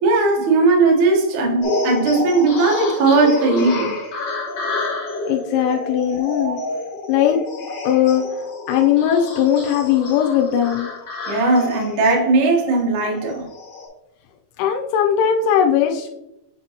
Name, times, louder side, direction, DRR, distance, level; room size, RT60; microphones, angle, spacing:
voice 1, 0.0-3.9 6.4-6.5 11.3-13.5, right 3 dB, 80° right, 1.7 m, -17 dB
sound 1, 1.6-13.9, left 3 dB, 55° left, 1.7 m, -29 dB
voice 2, 5.2-6.6 7.1-7.4 7.8-8.2 8.7-10.9 14.6-16.1, left 9 dB, 85° left, 3.1 m, -18 dB
7.3 x 5.4 x 2.9 m
omnidirectional pair, 5.5 m